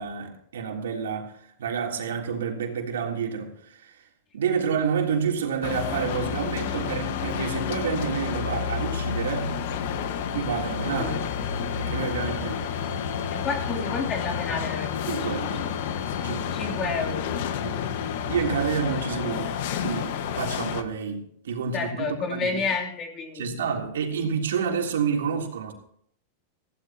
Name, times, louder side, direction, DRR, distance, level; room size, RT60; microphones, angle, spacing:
voice 1, 0.0-1.3 1.6-4.0 4.3-9.6 10.3-11.2 11.8-12.7 15.1-15.7 16.2-16.6 17.6-17.8 18.2-19.5 19.8-22.6 23.3-25.7, right 6 dB, 90° right, 3.4 m, -29 dB
sound 1, 5.6-20.8, left 7 dB, 70° left, 1.6 m, -30 dB
voice 2, 13.3-15.9 16.5-17.4 21.7-23.5, left 4 dB, 30° left, 3.4 m, -31 dB
17.5 x 16.0 x 3.0 m
hypercardioid pair, 130°, 0 cm